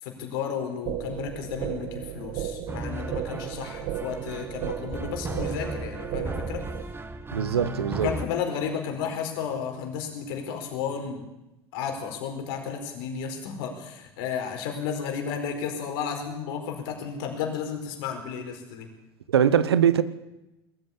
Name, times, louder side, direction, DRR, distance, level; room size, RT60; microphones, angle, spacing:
voice 1, 0.0-6.6 8.0-11.3 11.7-18.9, left 7 dB, 65° left, 4.6 m, -33 dB
sound 1, 0.9-6.9, right 10 dB, 60° right, 1.8 m, -34 dB
sound 2, 2.7-8.3, right 2 dB, 15° right, 1.7 m, -36 dB
voice 2, 7.3-8.1 19.3-20.0, right 8 dB, 80° right, 1.1 m, -21 dB
21.5 x 14.0 x 8.5 m
figure-of-eight pair, 70°, 13 cm